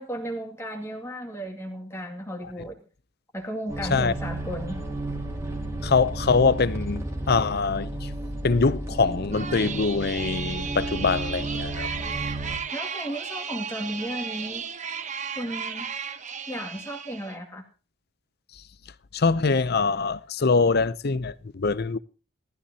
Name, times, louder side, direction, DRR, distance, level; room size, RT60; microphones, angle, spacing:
voice 1, 0.0-2.8 3.3-4.8 12.7-14.6 15.4-15.9 16.5-17.6, equal, 10° left, 2.2 m, -34 dB
sound 1, 3.7-12.6, right 1 dB, 15° right, 2.5 m, -33 dB
voice 2, 5.8-8.1 8.4-11.9 19.1-22.0, left 4 dB, 50° left, 0.6 m, -23 dB
sound 2, 9.3-17.4, right 6 dB, 35° right, 0.9 m, -35 dB
19.0 x 13.0 x 2.8 m
head